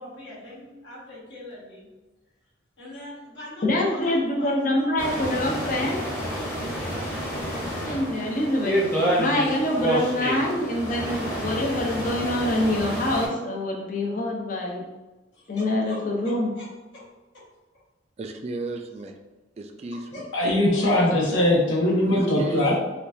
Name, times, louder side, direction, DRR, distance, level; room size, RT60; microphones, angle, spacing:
voice 1, 0.0-1.9 2.8-5.7 15.3-16.7 16.9-17.0 19.9-20.2 21.0-21.1, left 1 dB, 65° left, -7 dB, 1.5 m, -43 dB
voice 2, 3.6-6.0 7.8-8.7 9.2-14.9 15.5-16.5 22.2-22.3, left 1 dB, 45° left, 0 dB, 0.6 m, -25 dB
sound 1, 5.0-13.3, equal, 15° left, 0.9 m, -28 dB
voice 3, 18.2-19.1 19.6-20.2 22.1-22.8, right 2 dB, 35° right, 4 dB, 0.3 m, -34 dB
voice 4, 20.3-22.8, left 1 dB, 90° left, -4 dB, 1.1 m, -21 dB
4.4 x 2.4 x 2.6 m, 1.1 s
head